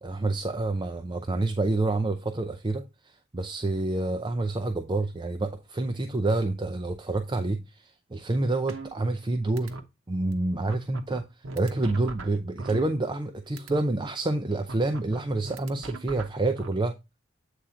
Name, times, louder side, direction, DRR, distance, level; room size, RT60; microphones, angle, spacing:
voice 1, 0.0-2.8 3.3-9.8 10.1-11.2 11.5-16.9, right 2 dB, 25° right, 0.5 m, -28 dB
sound 1, 8.7-9.3 9.6-9.8 10.3-10.4 10.7-13.3 13.6-13.8 14.7-16.7, right 3 dB, 75° right, 0.9 m, -40 dB
8.4 x 3.7 x 4.3 m
head